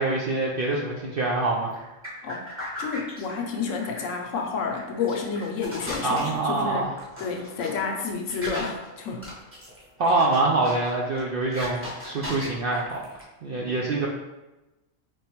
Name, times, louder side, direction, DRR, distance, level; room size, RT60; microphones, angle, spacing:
voice 1, 0.0-1.7 6.0-6.9 10.0-13.0 13.4-14.1, right 2 dB, 65° right, -3 dB, 0.5 m, -25 dB
sound 1, 1.7-13.2, left 1 dB, 10° right, 0.9 m, -39 dB
voice 2, 2.8-6.9 7.2-9.3, left 5 dB, 70° left, 2 dB, 0.9 m, -30 dB
4.5 x 3.3 x 3.0 m, 1.0 s
omnidirectional pair, 1.4 m